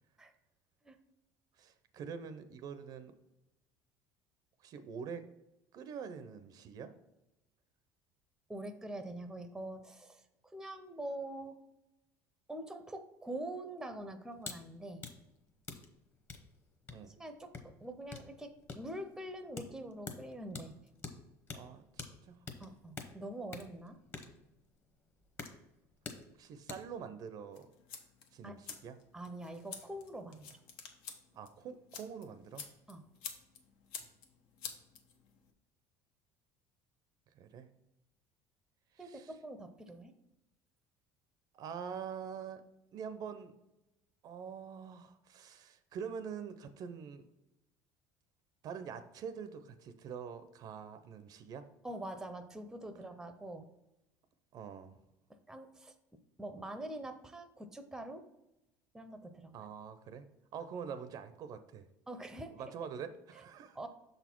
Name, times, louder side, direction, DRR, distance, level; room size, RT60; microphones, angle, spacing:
voice 1, 1.6-3.2 4.6-5.2 5.7-6.9 16.9-17.1 21.5-21.8 22.3-22.4 26.4-27.7 28.3-29.0 31.3-32.6 37.4-37.7 38.9-39.3 41.5-42.6 42.9-43.5 44.2-47.3 48.6-51.7 54.5-55.0 59.5-60.3 60.5-61.8 62.5-63.9, right 7 dB, 50° right, 11 dB, 0.5 m, -45 dB
voice 2, 8.5-11.6 12.5-15.1 17.1-20.7 22.6-24.0 28.4-28.6 29.1-30.6 32.9-33.0 39.0-40.1 51.8-53.7 55.5-55.9 56.4-58.2 58.9-59.5 62.1-62.5 63.7-63.9, right 1 dB, 5° right, 8 dB, 0.6 m, -44 dB
sound 1, 14.4-14.6 14.9-27.0, left 4 dB, 25° left, 1.0 m, -48 dB
sound 2, 27.5-35.5, left 6 dB, 80° left, 1.0 m, -50 dB
6.5 x 4.1 x 4.5 m, 0.92 s
cardioid pair, 120°, 9 cm